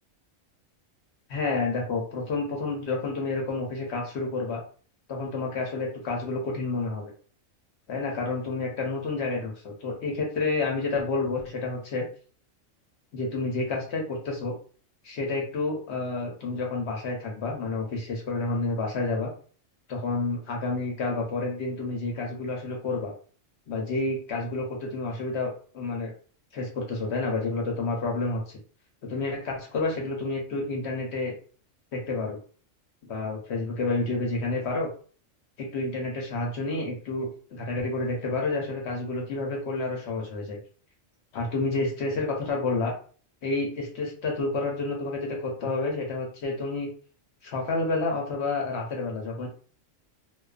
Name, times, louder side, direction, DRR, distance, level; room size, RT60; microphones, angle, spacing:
voice 1, 1.3-4.6 5.1-7.0 7.9-12.1 13.1-14.5 15.0-19.3 19.9-23.1 23.7-26.1 26.5-28.4 29.0-31.3 31.9-32.4 33.0-34.9 35.6-40.6 41.3-42.9 43.4-46.9 47.4-49.5, left 3 dB, 60° left, 0 dB, 0.9 m, -29 dB
2.3 x 2.2 x 2.3 m, 0.41 s
omnidirectional pair, 1.3 m